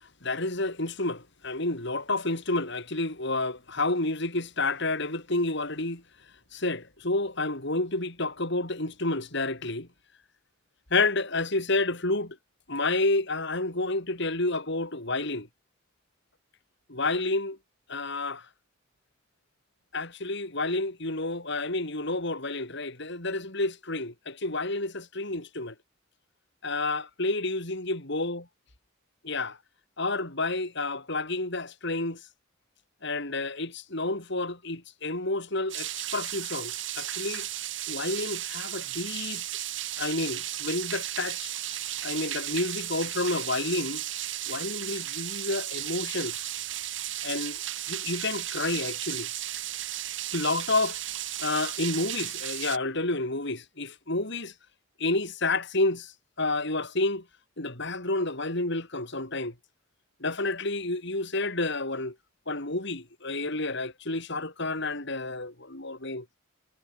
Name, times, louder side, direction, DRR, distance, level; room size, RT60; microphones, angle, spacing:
voice 1, 0.2-6.0 6.5-9.9 10.9-12.4 12.7-15.5 16.9-17.6 17.9-18.4 19.9-25.7 26.6-28.4 29.2-29.6 30.0-32.2 33.0-37.5 37.9-39.4 40.0-41.5 42.0-44.0 44.5-46.5 47.2-47.6 47.9-49.3 50.3-51.0 51.4-54.5 55.0-56.1 56.4-57.2 57.6-59.5 60.2-62.1 62.5-66.3, left 2 dB, 60° left, 5.4 m, -30 dB
sound 1, 35.7-52.8, right 13 dB, 65° right, 5.7 m, -34 dB
head